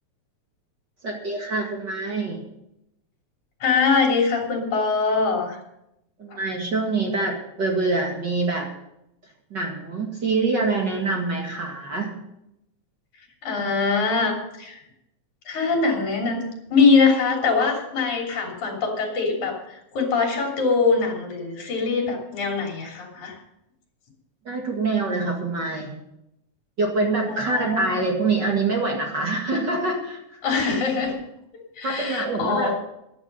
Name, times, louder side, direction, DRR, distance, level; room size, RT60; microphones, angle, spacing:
voice 1, 1.0-2.4 6.2-8.7 9.5-12.1 24.4-25.9 26.8-30.4 31.8-32.7, right 3 dB, 40° right, 0 dB, 2.3 m, -25 dB
voice 2, 3.6-5.6 6.3-6.4 13.4-14.8 15.5-23.4 27.3-27.9 30.4-31.2 31.8-32.7, left 4 dB, 75° left, 0 dB, 4.6 m, -23 dB
14.5 x 11.0 x 5.5 m, 0.83 s
omnidirectional pair, 3.5 m